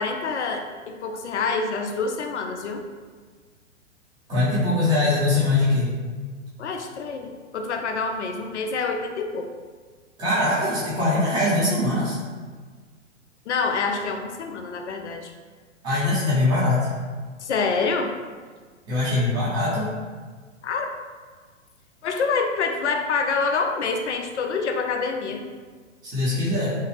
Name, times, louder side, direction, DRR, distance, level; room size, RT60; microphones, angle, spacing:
voice 1, 0.0-2.8 6.6-9.5 13.5-15.3 17.4-18.1 20.6-20.9 22.0-25.5, left 4 dB, 65° left, 4 dB, 0.5 m, -26 dB
voice 2, 4.3-5.9 10.2-12.2 15.8-16.9 18.9-19.9 26.0-26.8, left 2 dB, 10° right, -10 dB, 0.6 m, -22 dB
3.0 x 2.3 x 3.1 m, 1.5 s
figure-of-eight pair, 110°, 37 cm